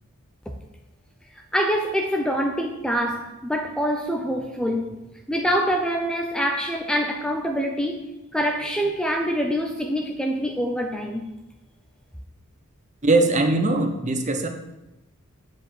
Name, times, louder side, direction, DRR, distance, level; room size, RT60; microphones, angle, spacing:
voice 1, 1.3-5.0 5.3-11.3, equal, 5° left, 3 dB, 0.6 m, -25 dB
voice 2, 13.0-14.5, right 2 dB, 35° right, 6 dB, 0.9 m, -20 dB
8.0 x 5.0 x 7.5 m, 0.97 s
head